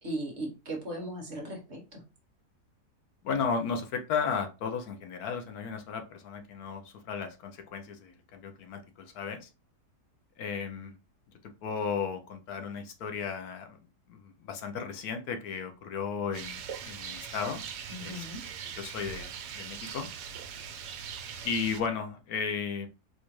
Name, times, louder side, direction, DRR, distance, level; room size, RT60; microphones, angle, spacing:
voice 1, 0.0-2.0 17.9-18.4, right 1 dB, 50° right, 1 dB, 1.1 m, -37 dB
voice 2, 3.2-9.5 10.4-10.9 11.6-13.8 14.1-17.6 18.0-20.1 21.4-22.9, left 6 dB, 75° left, 5 dB, 1.0 m, -35 dB
Rain, 16.3-21.8, right 7 dB, 80° right, 1.2 m, -41 dB
4.3 x 2.4 x 3.0 m, 0.30 s
omnidirectional pair, 1.7 m